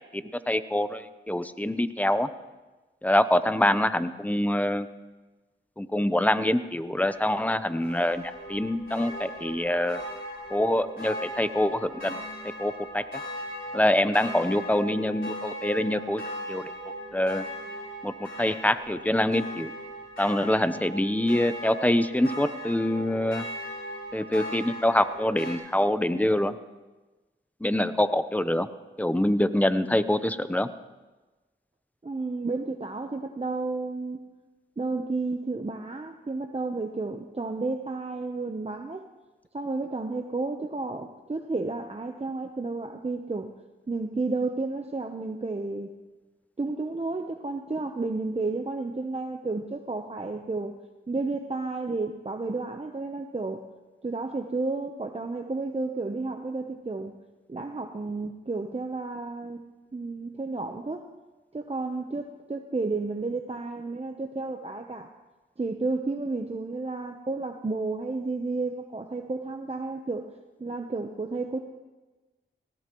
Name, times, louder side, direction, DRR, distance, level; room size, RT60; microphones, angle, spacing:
voice 1, 0.1-2.3 3.0-4.9 5.8-10.0 10.5-12.2 12.6-13.0 13.7-16.2 16.5-16.7 17.1-17.4 18.0-19.7 20.2-23.4 24.1-26.5 27.6-28.7 29.0-30.7, left 1 dB, 5° left, 12 dB, 0.7 m, -25 dB
sound 1, 7.0-25.6, equal, 70° left, 3.9 m, -38 dB
voice 2, 32.0-34.2 34.8-39.0 39.5-43.5 43.9-45.9 46.6-50.7 51.1-53.7 54.0-57.1 57.5-59.6 59.9-61.1 61.5-65.1 65.6-70.3 70.6-71.6, right 3 dB, 30° right, 4 dB, 0.9 m, -32 dB
18.0 x 17.0 x 3.1 m, 1.2 s
cardioid pair, 50°, 20 cm